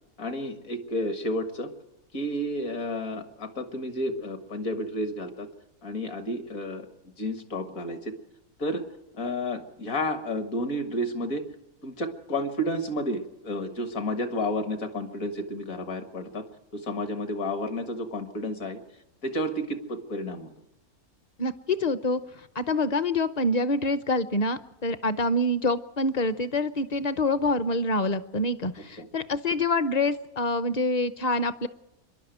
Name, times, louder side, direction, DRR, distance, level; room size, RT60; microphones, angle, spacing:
voice 1, 0.2-1.7 2.1-5.5 5.8-8.1 8.6-8.8 9.1-11.4 11.8-16.4 16.7-18.8 19.2-20.5 29.0-29.1, left 1 dB, 65° left, 8 dB, 2.1 m, -31 dB
voice 2, 21.4-22.2 22.6-31.7, left 2 dB, 40° left, 13 dB, 0.7 m, -26 dB
25.5 x 11.5 x 9.1 m, 0.89 s
omnidirectional pair, 1.5 m